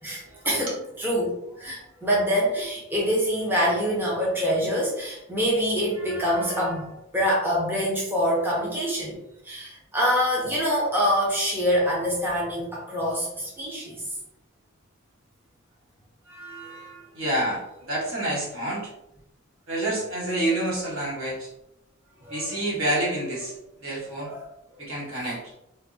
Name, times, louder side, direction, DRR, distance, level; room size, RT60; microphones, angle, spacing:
voice 1, 0.0-9.2 9.4-14.0 16.3-17.0 22.2-22.6 24.2-24.5, equal, 10° right, -5 dB, 0.5 m, -26 dB
voice 2, 17.1-18.9 19.7-21.5 22.3-23.5 23.8-24.3 24.8-25.4, right 1 dB, 65° right, -5 dB, 1.2 m, -28 dB
3.3 x 2.0 x 2.6 m, 0.86 s
head